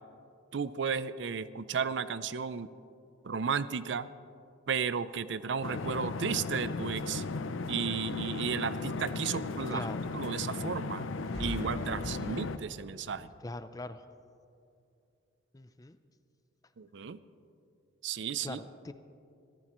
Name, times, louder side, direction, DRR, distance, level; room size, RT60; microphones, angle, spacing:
voice 1, 0.5-2.7 3.2-4.1 4.7-7.2 7.7-9.9 10.1-11.1 11.4-13.3 16.8-17.2 18.0-18.6, right 6 dB, 65° right, 15 dB, 0.5 m, -34 dB
sound 1, 5.6-12.6, left 3 dB, 80° left, 0.6 m, -36 dB
voice 2, 9.7-10.1 13.1-14.0 15.5-16.0 18.4-18.9, left 2 dB, 20° left, 11 dB, 0.4 m, -42 dB
sound 2, 11.1-12.8, equal, 35° right, 2.9 m, -41 dB
25.0 x 14.0 x 3.1 m, 2.5 s
head